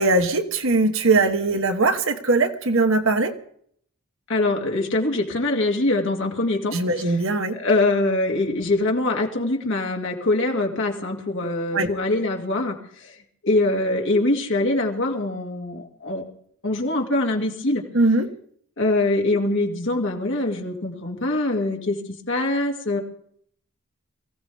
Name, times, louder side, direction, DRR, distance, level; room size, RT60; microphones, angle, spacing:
voice 1, 0.0-3.3 6.7-7.6 11.7-11.9 17.9-18.3, right 3 dB, 65° right, 7 dB, 1.3 m, -20 dB
voice 2, 4.3-7.2 7.5-13.1 13.4-16.2 16.6-17.8 18.8-23.0, left 2 dB, 60° left, 1 dB, 2.6 m, -23 dB
23.0 x 16.0 x 3.6 m, 0.65 s
head